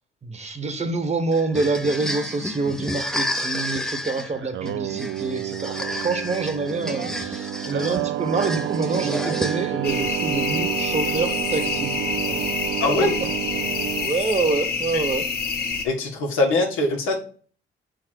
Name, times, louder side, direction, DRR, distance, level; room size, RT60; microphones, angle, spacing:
voice 1, 0.2-11.9 12.2-12.5 13.0-13.1 14.0-15.3, right 3 dB, 35° right, 1.2 m, -26 dB
sound 1, 1.3-9.9, left 1 dB, ahead, 0.6 m, -31 dB
Singing, 4.3-14.1, right 13 dB, 70° right, 0.4 m, -29 dB
sound 2, 9.8-15.8, left 5 dB, 50° left, 1.3 m, -27 dB
voice 2, 12.8-13.1 14.9-15.0 15.8-17.2, left 2 dB, 85° left, 1.7 m, -22 dB
5.9 x 3.9 x 4.6 m
cardioid pair, 90°, 20 cm